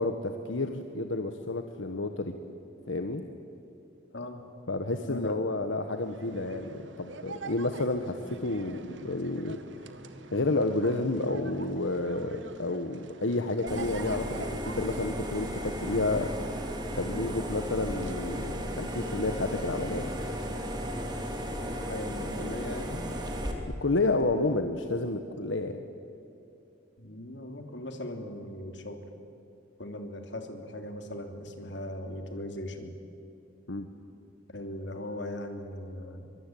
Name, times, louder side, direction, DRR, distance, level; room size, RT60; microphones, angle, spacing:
voice 1, 0.0-2.3 2.9-3.2 4.7-9.9 10.3-16.3 17.0-20.1 23.8-25.8 33.7-33.9, left 2 dB, 90° left, 7 dB, 1.4 m, -30 dB
voice 2, 4.8-5.4 21.9-23.0 27.0-29.0 29.8-32.9 34.5-36.4, left 1 dB, 70° left, 5 dB, 3.1 m, -39 dB
Napoli Molo Beverello Tourists, 5.9-24.4, right 3 dB, 75° right, 1.8 m, -47 dB
sound 1, 13.7-23.5, equal, 20° right, 3.3 m, -35 dB
24.0 x 23.5 x 9.3 m, 2.8 s
head